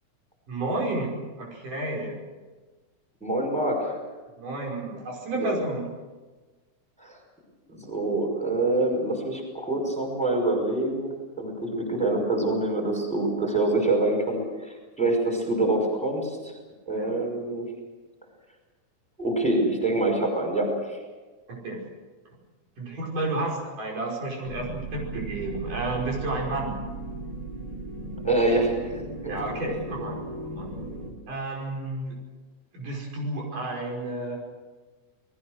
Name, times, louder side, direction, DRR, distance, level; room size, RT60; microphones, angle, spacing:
voice 1, 0.5-2.2 4.4-5.8 17.0-17.2 21.5-21.8 22.8-26.8 29.2-30.7 31.3-32.1 32.7-34.4, right 2 dB, 80° right, -1 dB, 7.1 m, -31 dB
voice 2, 3.2-3.9 5.3-5.5 7.0-7.2 7.7-11.1 11.4-16.5 16.9-17.7 19.2-21.0 28.2-29.4, right 2 dB, ahead, 1 dB, 5.0 m, -26 dB
sound 1, 24.4-31.1, right 2 dB, 60° right, 4.9 m, -36 dB
29.0 x 20.0 x 6.5 m, 1.3 s
omnidirectional pair, 3.6 m